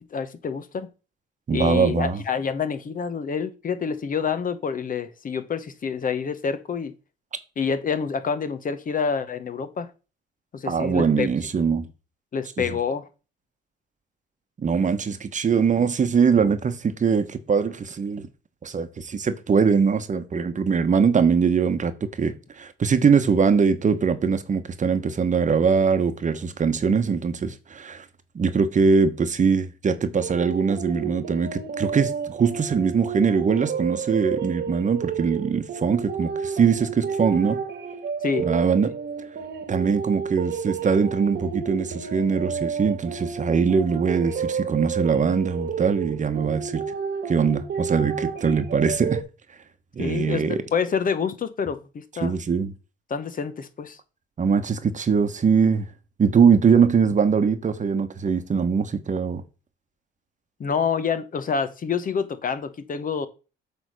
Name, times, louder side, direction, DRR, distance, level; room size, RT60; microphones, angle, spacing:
voice 1, 0.1-0.9 1.5-6.9 7.6-9.9 10.5-11.3 12.3-13.1 38.2-38.5 50.0-52.3 53.1-54.0 60.6-63.3, left 6 dB, 45° left, 0.9 m, -27 dB
voice 2, 1.5-2.2 10.7-11.9 12.6-12.7 14.6-18.3 18.6-28.0 28.3-37.6 38.4-38.9 39.7-46.8 47.3-49.2 50.0-50.6 52.2-52.7 54.4-55.9 56.2-59.4, right 6 dB, 40° right, 1.1 m, -22 dB
sound 1, 30.2-49.2, right 6 dB, 60° right, 1.3 m, -31 dB
8.1 x 3.5 x 6.4 m
cardioid pair, 90°, 20 cm